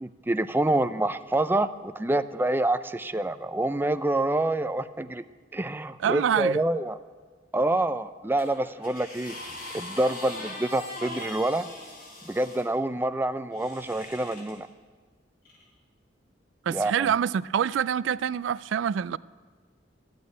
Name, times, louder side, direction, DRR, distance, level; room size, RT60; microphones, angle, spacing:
voice 1, 0.0-5.2 5.5-7.0 7.5-9.4 9.7-11.7 12.2-14.7 16.7-17.1, right 1 dB, 10° right, 0.4 m, -27 dB
voice 2, 6.0-6.6 16.7-19.2, right 8 dB, 85° right, 0.3 m, -26 dB
sound 1, 8.4-12.7 13.5-14.5 15.5-15.6, left 2 dB, 50° left, 4.0 m, -41 dB
14.5 x 8.7 x 9.3 m
head